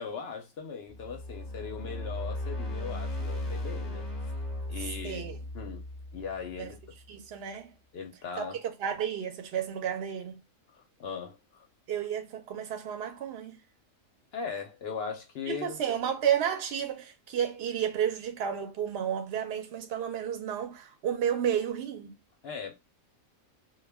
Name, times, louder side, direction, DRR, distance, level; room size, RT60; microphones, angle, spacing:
voice 1, 0.0-4.1 4.7-5.2 5.5-5.8 6.1-6.8 7.9-8.6 10.7-11.7 14.3-15.8 22.4-22.7, left 5 dB, 60° left, 0.7 m, -39 dB
sound 1, 0.9-7.1, left 1 dB, 25° left, 0.7 m, -37 dB
voice 2, 5.0-5.4 6.6-6.7 7.1-7.7 8.4-10.4 11.9-13.6 15.5-22.1, right 9 dB, 60° right, 0.7 m, -32 dB
2.3 x 2.2 x 3.3 m
omnidirectional pair, 1.4 m